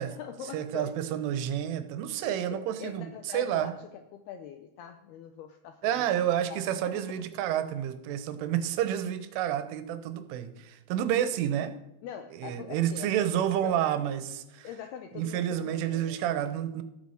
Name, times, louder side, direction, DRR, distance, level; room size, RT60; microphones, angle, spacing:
voice 1, 0.0-1.0 2.2-6.0 6.5-7.2 11.1-11.3 12.0-13.8 14.6-16.3, left 8 dB, 85° left, 8 dB, 2.3 m, -43 dB
voice 2, 0.5-3.7 5.8-11.7 12.3-14.7 15.1-16.8, right 10 dB, 90° right, 10 dB, 3.5 m, -30 dB
14.0 x 8.6 x 7.9 m, 0.93 s
omnidirectional pair, 5.5 m